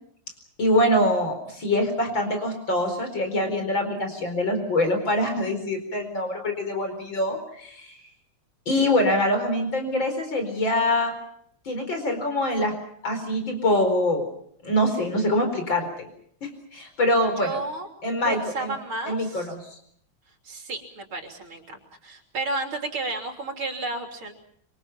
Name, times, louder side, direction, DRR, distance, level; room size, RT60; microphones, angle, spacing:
voice 1, 0.6-8.0 8.7-11.1 11.7-12.7 13.0-14.2 14.6-16.1 16.4-17.6 18.0-18.7 19.1-19.8, left 1 dB, 65° left, 5 dB, 5.2 m, -24 dB
voice 2, 17.4-17.9 18.2-19.5 20.4-24.3, right 3 dB, 80° right, 3 dB, 4.1 m, -32 dB
26.5 x 26.0 x 5.9 m, 0.67 s
omnidirectional pair, 2.2 m